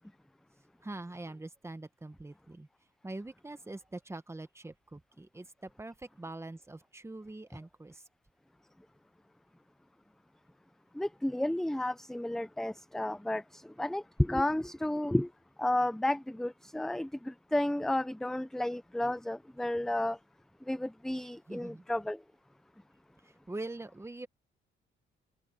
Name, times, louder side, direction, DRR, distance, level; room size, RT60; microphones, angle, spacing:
voice 1, 0.8-2.7 3.0-8.0 21.5-21.8 23.2-24.3, right 2 dB, 15° right, 1.5 m, -44 dB
voice 2, 11.0-15.3 15.6-20.2 20.7-22.2, left 1 dB, ahead, 0.6 m, -32 dB
cardioid pair, 90°, 20 cm